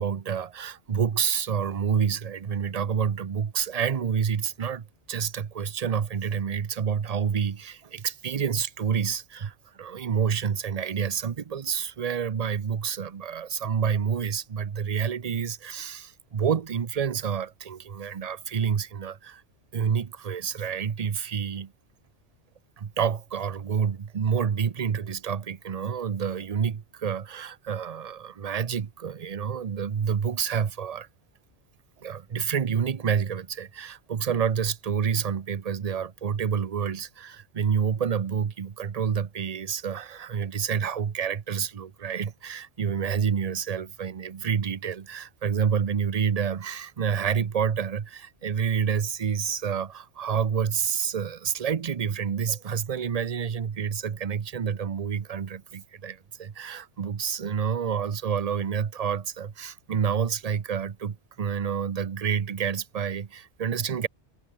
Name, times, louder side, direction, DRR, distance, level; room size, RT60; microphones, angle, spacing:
voice 1, 0.0-19.4 19.7-21.7 22.8-31.1 32.0-64.1, right 7 dB, 40° right, 0.7 m, -28 dB
omnidirectional pair, 1.2 m